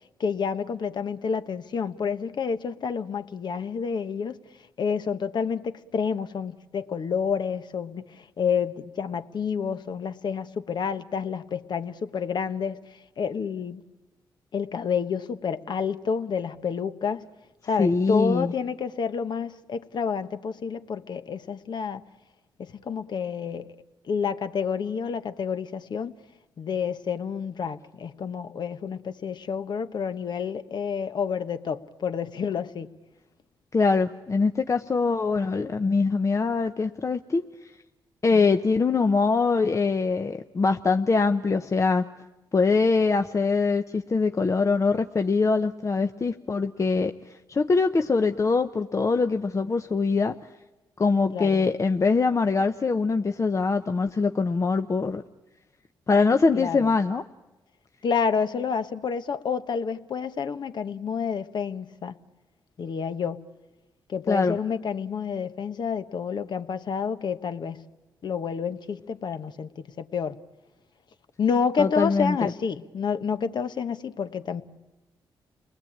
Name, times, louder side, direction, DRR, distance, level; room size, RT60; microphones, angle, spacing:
voice 1, 0.2-4.4 4.8-12.8 13.2-13.8 14.5-17.2 17.6-22.0 22.6-23.7 24.1-26.1 26.6-32.9 51.3-51.7 56.5-56.9 58.0-62.2 62.8-63.4 64.1-67.8 68.2-70.4 71.4-74.6, left 6 dB, 60° left, 1.2 m, -29 dB
voice 2, 17.8-18.5 33.7-37.4 38.2-42.0 42.5-47.1 47.5-50.3 51.0-55.2 56.1-57.2 64.3-64.6 71.8-72.5, left 4 dB, 35° left, 0.9 m, -23 dB
29.0 x 20.0 x 8.8 m
supercardioid pair, 60°, 9 cm